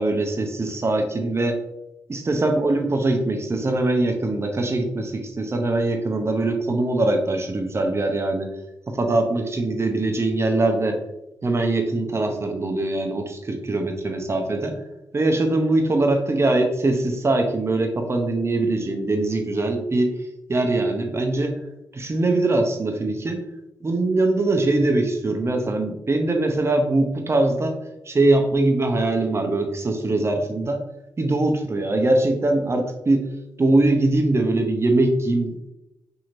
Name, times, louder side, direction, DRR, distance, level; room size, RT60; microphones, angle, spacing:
voice 1, 0.0-1.6 2.1-8.5 8.9-11.0 11.4-14.8 15.1-20.1 20.5-21.6 21.9-23.4 23.8-27.8 28.1-30.8 31.2-33.3 33.6-35.7, right 2 dB, 35° right, 4 dB, 0.6 m, -22 dB
2.9 x 2.7 x 2.5 m, 0.89 s
supercardioid pair, 40°, 8 cm